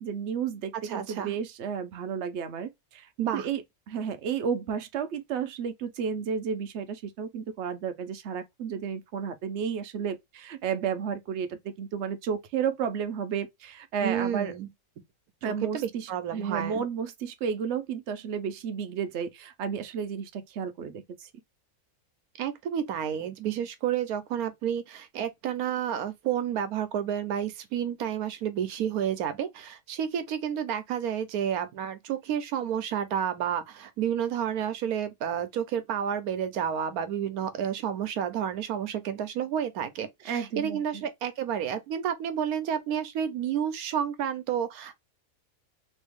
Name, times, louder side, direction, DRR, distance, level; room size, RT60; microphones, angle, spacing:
voice 1, 0.0-3.1 3.3-14.5 15.4-21.3 40.3-41.0, right 7 dB, 60° right, 0.8 m, -32 dB
voice 2, 0.8-1.3 3.2-3.5 14.0-14.7 15.5-16.8 22.4-44.9, right 9 dB, 90° right, 1.2 m, -30 dB
3.0 x 2.7 x 3.4 m
omnidirectional pair, 1.5 m